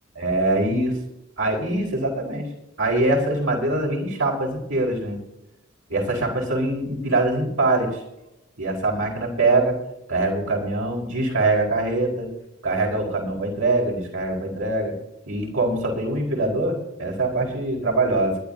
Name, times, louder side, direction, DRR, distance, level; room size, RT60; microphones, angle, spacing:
voice 1, 0.1-1.0 1.4-2.5 2.8-5.2 5.9-8.0 8.6-9.8 10.1-12.3 12.6-14.9 15.3-18.4, right 2 dB, 80° right, -1 dB, 4.5 m, -23 dB
21.0 x 12.0 x 2.8 m, 0.91 s
head